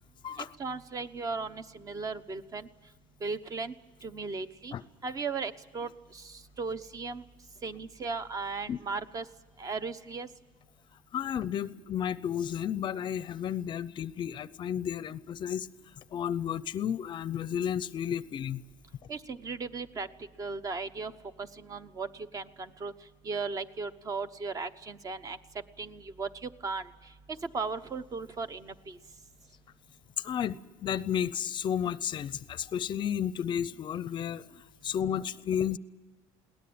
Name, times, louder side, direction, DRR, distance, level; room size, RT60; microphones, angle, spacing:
voice 1, 0.4-2.7 3.2-3.7 4.0-4.7 5.0-7.2 7.6-9.3 9.6-10.3 19.1-20.1 20.4-21.1 21.4-22.9 23.2-25.4 25.8-29.0, right 4 dB, 30° right, 12 dB, 1.0 m, -37 dB
voice 2, 11.1-15.7 16.1-18.6 30.2-34.4 34.8-35.8, left 9 dB, 40° left, 17 dB, 0.6 m, -32 dB
22.0 x 18.0 x 8.7 m, 1.2 s
cardioid pair, 140°, 12 cm